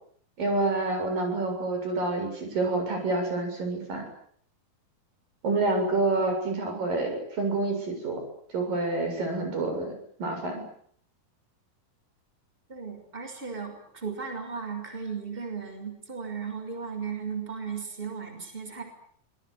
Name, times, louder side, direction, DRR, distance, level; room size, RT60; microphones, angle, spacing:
voice 1, 0.4-4.1 5.4-8.2 8.5-9.9 10.2-10.6, right 2 dB, 70° right, 4 dB, 8.9 m, -28 dB
voice 2, 12.7-18.8, right 6 dB, 15° right, 6 dB, 6.0 m, -36 dB
26.5 x 21.0 x 9.7 m, 0.62 s
omnidirectional pair, 4.1 m